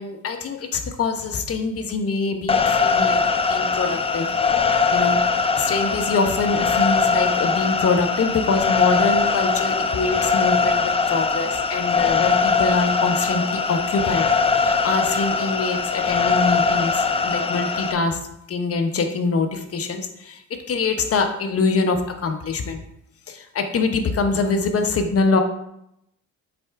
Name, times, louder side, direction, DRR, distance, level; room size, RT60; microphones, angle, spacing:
voice 1, 0.0-3.2 3.5-4.3 4.7-5.2 5.6-14.3 14.5-18.2 18.5-22.8 23.3-25.4, left 4 dB, 50° left, 6 dB, 1.0 m, -24 dB
sound 1, 2.5-17.9, left 4 dB, 20° left, 0.5 m, -21 dB
8.0 x 3.4 x 4.6 m, 0.80 s
cardioid pair, 90°, 30 cm